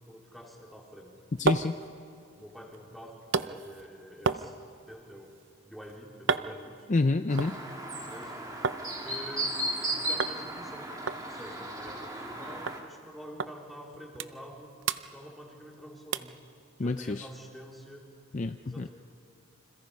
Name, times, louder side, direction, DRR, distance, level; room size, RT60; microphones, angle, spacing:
voice 1, 0.1-1.1 2.3-4.5 4.9-5.4 5.6-6.9 8.0-9.6 9.9-10.9 11.2-14.7 15.1-16.3 16.8-18.1 18.6-18.9, equal, ahead, -2 dB, 3.3 m, -47 dB
sound 1, 0.9-8.8 9.2-9.8 10.2-10.4 10.7-10.8 11.1-12.4 12.7-12.8 13.4-13.5 13.9-14.6 14.8-15.7 16.1-16.4 16.9-17.0, right 5 dB, 55° right, 0.6 m, -34 dB
voice 2, 1.4-1.8 6.9-7.6 16.8-17.3 18.3-18.9, left 3 dB, 35° left, 8 dB, 0.5 m, -28 dB
Chirp tweet, 7.3-12.8, right 1 dB, 15° right, 2.2 m, -35 dB
28.5 x 26.5 x 5.5 m, 2.4 s
head